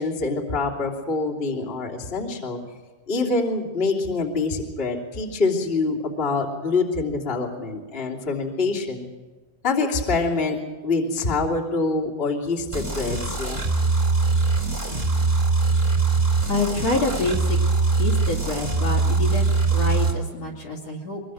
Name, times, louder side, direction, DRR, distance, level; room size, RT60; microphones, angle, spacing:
voice 1, 0.0-2.6 3.1-9.1 9.6-10.6 10.8-13.6, left 3 dB, 15° left, -2 dB, 2.7 m, -25 dB
sound 1, 12.7-20.1, right 3 dB, 15° right, 3.1 m, -22 dB
voice 2, 16.5-17.6 18.0-21.2, left 3 dB, 45° left, 3 dB, 3.4 m, -27 dB
23.5 x 23.5 x 6.4 m, 1.3 s
omnidirectional pair, 4.4 m